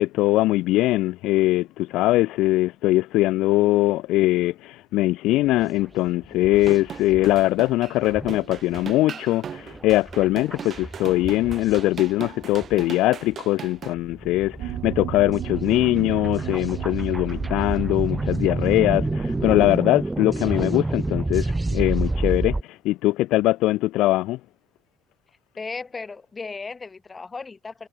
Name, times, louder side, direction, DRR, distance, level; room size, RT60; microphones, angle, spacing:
voice 1, 0.0-24.4, left 17 dB, 70° left, 0.4 m, -21 dB
sound 1, 5.4-5.8 6.2-7.4 7.7-7.8 8.0-12.9 13.3-13.4 13.8-22.6, right 2 dB, 10° right, 0.4 m, -29 dB
sound 2, 6.6-13.9, right 8 dB, 30° right, 1.3 m, -38 dB
sound 3, 14.6-19.8, right 14 dB, 60° right, 0.7 m, -34 dB
voice 2, 25.6-27.9, left 4 dB, 15° left, 1.3 m, -35 dB
cardioid pair, 175°, 0 cm